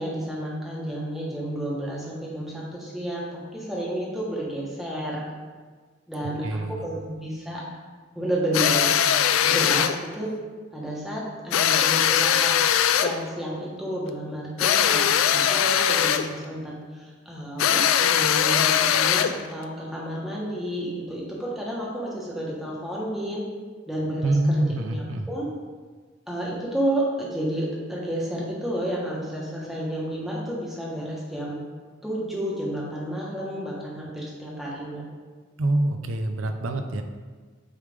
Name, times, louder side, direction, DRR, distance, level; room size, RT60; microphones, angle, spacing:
voice 1, 0.0-5.3 6.1-7.6 8.1-9.0 9.4-10.3 10.7-12.5 13.0-23.4 23.9-25.5 26.3-31.6 32.0-35.1, right 1 dB, ahead, -5 dB, 1.2 m, -31 dB
voice 2, 6.4-6.8 24.2-25.3 35.6-37.0, right 1 dB, 85° right, 6 dB, 0.6 m, -25 dB
sound 1, 8.5-10.0 11.5-13.2 14.6-16.3 17.6-19.4, left 9 dB, 90° left, 0.3 m, -21 dB
8.4 x 3.3 x 3.5 m, 1.4 s
head